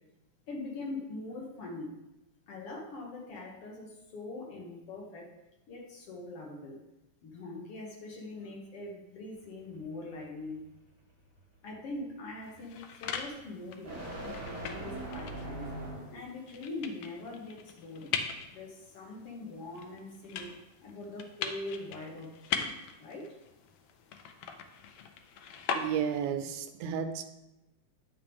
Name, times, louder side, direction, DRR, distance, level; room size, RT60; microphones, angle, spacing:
voice 1, 0.5-2.0 2.5-5.3 5.7-6.8 7.2-10.6 11.6-14.0 14.2-14.4 14.7-15.7 16.1-18.1 18.5-20.5 20.8-23.4, left 2 dB, 55° left, -1 dB, 1.9 m, -42 dB
sound 1, 9.3-16.3, right 1 dB, 40° right, 2.4 m, -43 dB
sound 2, 12.4-26.4, left 6 dB, 80° left, 1.4 m, -41 dB
voice 2, 25.8-27.2, right 8 dB, 80° right, 9 dB, 2.0 m, -32 dB
10.0 x 7.6 x 3.5 m, 0.95 s
omnidirectional pair, 3.5 m